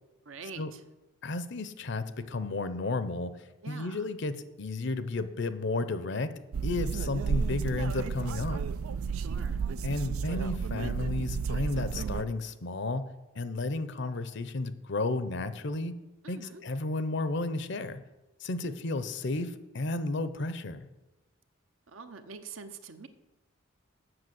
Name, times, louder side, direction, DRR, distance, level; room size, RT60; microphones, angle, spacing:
voice 1, 0.2-0.8 3.6-4.1 9.1-9.6 16.2-16.6 21.9-23.1, right 4 dB, 70° right, 9 dB, 0.8 m, -45 dB
voice 2, 1.2-3.3 3.7-6.3 6.6-8.6 9.8-13.0 13.3-15.9 16.3-18.0 18.4-20.9, left 2 dB, 55° left, 12 dB, 0.6 m, -32 dB
sound 1, 6.5-12.2, right 6 dB, 90° right, 0.4 m, -32 dB
7.8 x 6.3 x 7.8 m, 1.0 s
head